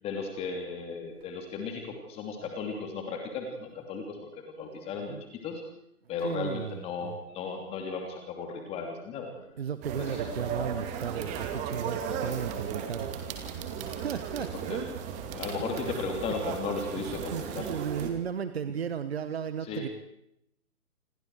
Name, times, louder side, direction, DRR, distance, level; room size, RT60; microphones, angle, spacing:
voice 1, 0.0-5.6 6.1-9.3 10.0-10.2 14.7-14.8 15.3-17.7 19.7-19.9, left 4 dB, 15° left, 3 dB, 2.9 m, -35 dB
voice 2, 6.2-7.2 9.6-13.1 13.5-14.5 16.9-19.9, right 8 dB, 45° right, 12 dB, 1.4 m, -35 dB
sound 1, 9.8-18.1, right 7 dB, 15° right, 2.4 m, -36 dB
27.5 x 27.0 x 4.8 m, 0.77 s
figure-of-eight pair, 140°, 45 cm